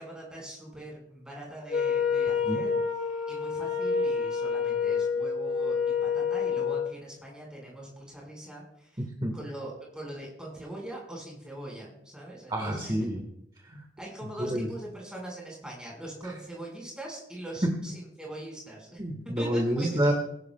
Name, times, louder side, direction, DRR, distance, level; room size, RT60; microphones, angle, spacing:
voice 1, 0.0-2.7 3.3-9.0 9.3-12.9 14.0-19.0 19.4-20.0, right 1 dB, 5° right, -2 dB, 4.5 m, -42 dB
Wind instrument woodwind instrument, 1.7-6.9, left 5 dB, 45° left, 1.2 m, -28 dB
voice 2, 9.0-9.4 12.5-13.2 13.6-13.8 14.2-14.7 16.2-16.3 17.6-17.7 19.0-20.1, right 1 dB, 25° right, 2 dB, 1.3 m, -28 dB
20.5 x 11.0 x 2.2 m, 0.78 s
head